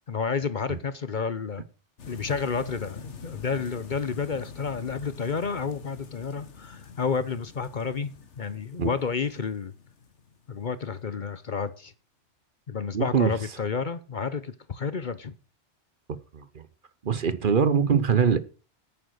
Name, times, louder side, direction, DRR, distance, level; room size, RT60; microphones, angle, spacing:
voice 1, 0.1-1.6 2.1-8.1 8.4-9.7 10.5-11.9 12.7-15.3, left 5 dB, 45° left, 0.9 m, -30 dB
sound 1, 2.0-11.0, left 5 dB, 80° left, 1.7 m, -45 dB
voice 2, 12.9-13.3 16.1-16.6 17.0-18.4, right 6 dB, 50° right, 1.0 m, -23 dB
10.5 x 9.1 x 6.4 m
omnidirectional pair, 1.2 m